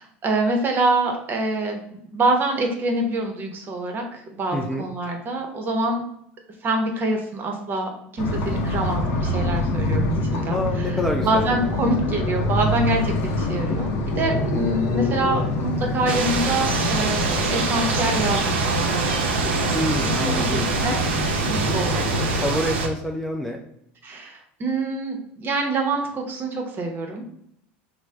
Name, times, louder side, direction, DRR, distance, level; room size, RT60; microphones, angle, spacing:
voice 1, 0.0-6.0 6.6-11.0 11.2-13.9 14.2-19.2 19.6-21.0 21.5-22.5 24.0-27.2, right 2 dB, 35° right, 3 dB, 0.8 m, -26 dB
voice 2, 4.5-4.9 10.5-11.5 14.5-14.7 19.7-20.7 22.4-23.6, left 1 dB, 5° left, 0 dB, 0.4 m, -27 dB
sound 1, 8.2-22.5, left 1 dB, 55° left, 0.6 m, -26 dB
sound 2, 16.1-22.9, right 4 dB, 90° right, 0.5 m, -24 dB
3.2 x 2.0 x 3.3 m, 0.73 s
supercardioid pair, 100°, 6 cm